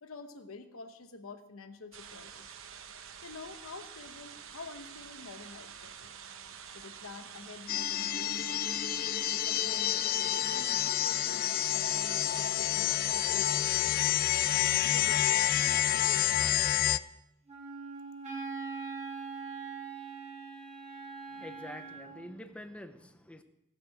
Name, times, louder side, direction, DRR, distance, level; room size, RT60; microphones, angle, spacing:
voice 1, 0.0-2.5 3.2-6.1 6.7-8.6 9.3-10.0 10.3-14.2 14.8-16.9, left 3 dB, 75° left, 8 dB, 1.0 m, -48 dB
sound 1, 1.9-15.7, right 7 dB, 65° right, 0.9 m, -48 dB
sound 2, 7.7-17.0, left 12 dB, 40° left, 0.3 m, -29 dB
Wind instrument woodwind instrument, 17.5-22.3, right 4 dB, 30° right, 2.6 m, -42 dB
voice 2, 21.3-23.4, left 1 dB, 5° left, 9 dB, 0.7 m, -46 dB
20.0 x 6.8 x 4.9 m, 0.85 s
head